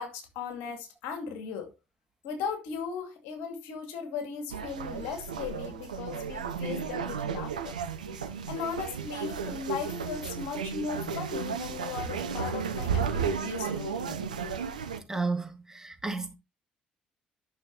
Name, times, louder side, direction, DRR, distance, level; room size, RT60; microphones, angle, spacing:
voice 1, 0.0-1.7 2.2-7.8 8.5-14.2, left 6 dB, 70° left, 2.3 m, -37 dB
sound 1, 4.5-15.0, right 6 dB, 90° right, 0.7 m, -33 dB
voice 2, 15.1-16.3, right 3 dB, 15° right, 2.3 m, -32 dB
12.0 x 6.5 x 3.0 m
hypercardioid pair, 50°, 4 cm